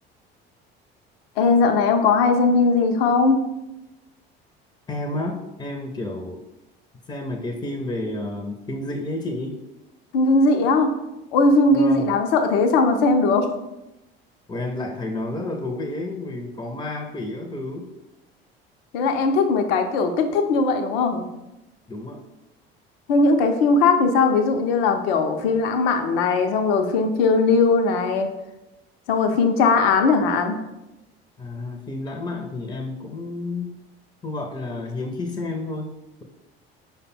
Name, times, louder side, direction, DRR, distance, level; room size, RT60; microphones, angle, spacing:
voice 1, 1.4-3.5 10.1-11.0 11.3-13.5 18.9-21.3 23.1-28.3 29.1-30.6, left 3 dB, 70° left, 6 dB, 0.6 m, -19 dB
voice 2, 4.9-6.4 7.1-9.6 11.7-12.1 14.5-17.9 21.9-22.2 31.4-33.8 34.2-35.9, left 2 dB, 15° left, 2 dB, 0.5 m, -30 dB
5.0 x 2.2 x 4.2 m, 0.93 s
hypercardioid pair, 60°, 30 cm